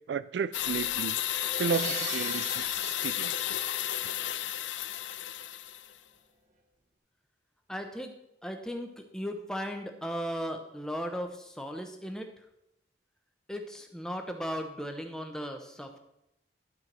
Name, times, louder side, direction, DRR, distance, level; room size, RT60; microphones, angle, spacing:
voice 1, 0.1-1.2 1.6-3.3, right 6 dB, 65° right, 16 dB, 0.3 m, -33 dB
sound 1, 0.5-5.9, left 12 dB, 75° left, 0.5 m, -32 dB
Crash cymbal, 1.3-4.3, right 3 dB, 40° right, 1.1 m, -41 dB
voice 2, 7.7-8.1 8.4-12.3 13.5-16.0, equal, 5° left, 5 dB, 0.9 m, -36 dB
12.0 x 4.7 x 6.0 m, 0.83 s
head